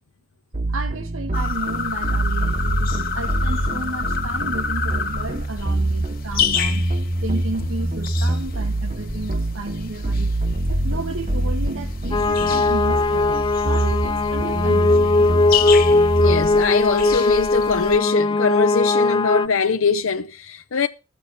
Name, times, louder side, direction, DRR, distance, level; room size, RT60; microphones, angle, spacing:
sound 1, 0.5-16.5, right 1 dB, 35° right, 1.0 m, -25 dB
voice 1, 0.7-6.9 7.2-10.3 10.7-13.4 13.6-15.3, right 2 dB, 75° right, 1.9 m, -33 dB
sound 2, 1.3-18.0, left 6 dB, 45° left, 1.7 m, -30 dB
sound 3, 12.1-19.5, left 2 dB, 25° left, 0.5 m, -19 dB
voice 2, 16.2-20.9, left 5 dB, 80° left, 0.7 m, -22 dB
14.0 x 6.8 x 6.4 m
head